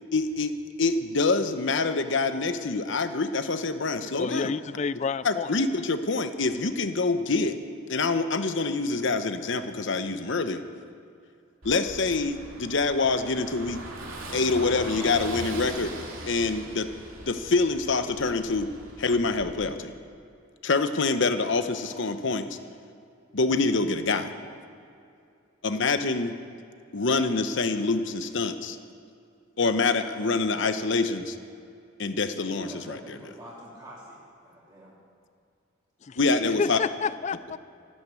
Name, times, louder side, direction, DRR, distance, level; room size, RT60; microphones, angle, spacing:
voice 1, 0.1-4.5 5.2-7.6 7.9-10.6 11.6-13.8 14.3-15.9 16.3-16.9 17.3-18.7 19.0-19.9 20.6-22.6 23.3-24.3 25.6-26.3 26.9-28.8 29.6-31.4 32.0-33.3 36.2-36.8, left 3 dB, 60° left, 9 dB, 0.9 m, -26 dB
voice 2, 4.2-5.5 36.1-37.6, left 5 dB, 35° left, 16 dB, 0.4 m, -30 dB
Car passing by / Engine, 11.6-19.5, right 1 dB, 80° right, 2.7 m, -40 dB
voice 3, 32.5-34.9, equal, 20° right, -7 dB, 2.6 m, -45 dB
14.0 x 11.0 x 8.2 m, 2.5 s
head